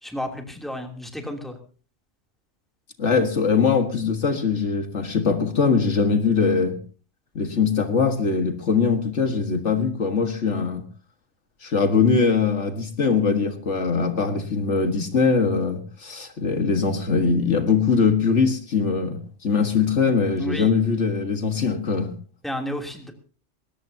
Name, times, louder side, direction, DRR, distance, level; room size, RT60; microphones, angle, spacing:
voice 1, 0.0-1.6 20.4-20.7 22.4-23.1, equal, ahead, 3 dB, 2.9 m, -32 dB
voice 2, 3.0-6.8 7.4-10.8 11.6-22.1, left 5 dB, 70° left, 7 dB, 2.0 m, -22 dB
21.0 x 17.5 x 2.8 m, 0.39 s
omnidirectional pair, 1.2 m